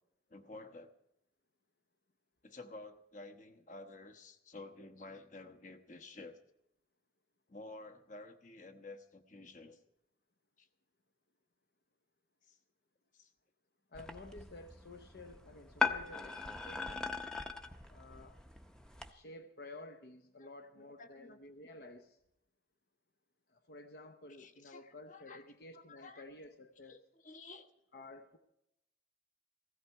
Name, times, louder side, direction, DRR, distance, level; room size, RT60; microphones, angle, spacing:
voice 1, 0.3-0.9 2.4-6.4 7.5-9.8 10.6-10.7 12.5-12.6 13.1-13.3 20.4-20.5 20.7-21.4 24.4-25.4 25.7-26.2 26.9-27.0 27.2-27.7, left 2 dB, 45° left, 1.1 m, -52 dB
voice 2, 13.9-17.2 17.9-18.4 19.1-22.2 23.5-27.0 27.9-28.4, left 2 dB, 60° left, 0.8 m, -52 dB
sound 1, 13.9-19.1, left 4 dB, 5° left, 0.7 m, -39 dB
16.5 x 16.0 x 4.6 m
head